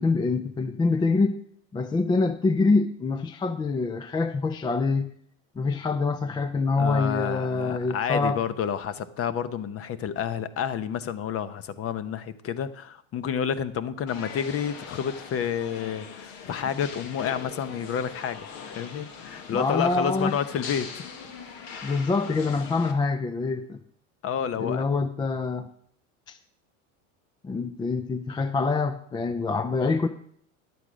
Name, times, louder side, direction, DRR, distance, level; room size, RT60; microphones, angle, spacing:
voice 1, 0.0-1.4 1.7-5.1 5.6-8.4 19.5-20.4 21.8-23.8 24.6-25.7 26.3-26.4 27.4-30.1, left 3 dB, 10° left, 11 dB, 0.4 m, -25 dB
voice 2, 6.8-21.1 24.2-24.9, left 8 dB, 35° left, 14 dB, 0.8 m, -30 dB
sound 1, 14.1-22.9, left 6 dB, 60° left, 1.7 m, -41 dB
11.0 x 8.1 x 5.0 m, 0.65 s
supercardioid pair, 115°, 39 cm